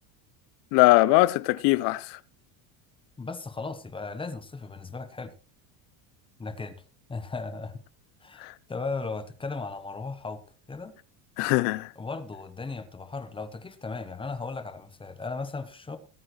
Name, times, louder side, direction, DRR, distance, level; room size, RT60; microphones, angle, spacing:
voice 1, 0.7-2.2 8.4-8.5 11.4-11.9, left 20 dB, 55° left, 0.7 m, -21 dB
voice 2, 3.2-5.3 6.4-6.8 7.1-7.8 8.2-10.4 10.7-10.9 12.0-16.0, left 3 dB, 10° left, 0.9 m, -36 dB
18.5 x 8.8 x 3.2 m
cardioid pair, 155°, 50 cm